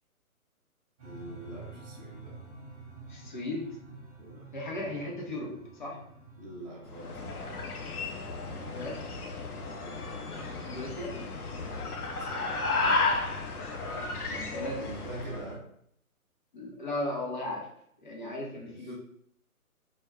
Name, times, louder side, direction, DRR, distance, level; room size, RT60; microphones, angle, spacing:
sound 1, 1.0-9.4, right 2 dB, 10° right, 1.0 m, -49 dB
voice 1, 1.0-2.3 4.2-4.5 6.4-7.4 9.8-10.1 12.1-13.0 14.2-15.6 18.5-18.9, right 1 dB, 30° right, -5 dB, 0.5 m, -45 dB
voice 2, 3.1-3.8 4.5-6.0 8.7-9.0 10.6-11.2 13.9-14.2 14.5-14.8 16.5-17.7 18.0-18.9, left 1 dB, 35° left, -2 dB, 0.6 m, -36 dB
sound 2, 6.9-15.5, left 3 dB, 75° left, 0.7 m, -33 dB
2.2 x 2.1 x 3.4 m, 0.69 s
hypercardioid pair, 150°, 45 cm